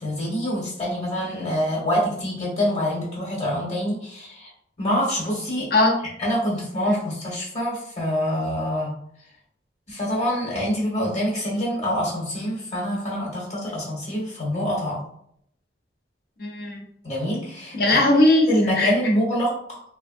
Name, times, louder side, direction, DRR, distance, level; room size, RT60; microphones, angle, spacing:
voice 1, 0.0-4.5 4.8-5.7 6.2-8.9 9.9-15.0 17.0-17.8 18.5-19.8, equal, 40° left, -4 dB, 1.3 m, -25 dB
voice 2, 16.4-16.8 17.7-18.9, left 2 dB, 55° left, 0 dB, 0.6 m, -19 dB
3.2 x 2.3 x 2.5 m, 0.69 s
head